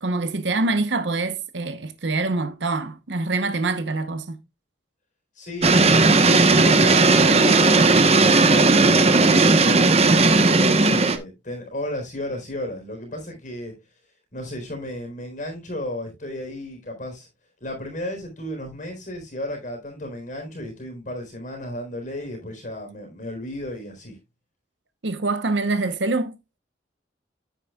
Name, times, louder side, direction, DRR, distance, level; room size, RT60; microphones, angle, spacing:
voice 1, 0.0-4.4 25.0-26.4, right 3 dB, 80° right, 0.9 m, -25 dB
voice 2, 5.3-7.8 8.5-10.1 10.5-13.7 14.3-17.3 17.6-24.2, left 1 dB, 45° left, 3.9 m, -33 dB
sound 1, 5.6-11.2, right 3 dB, 35° right, 1.0 m, -16 dB
9.5 x 9.2 x 2.3 m
head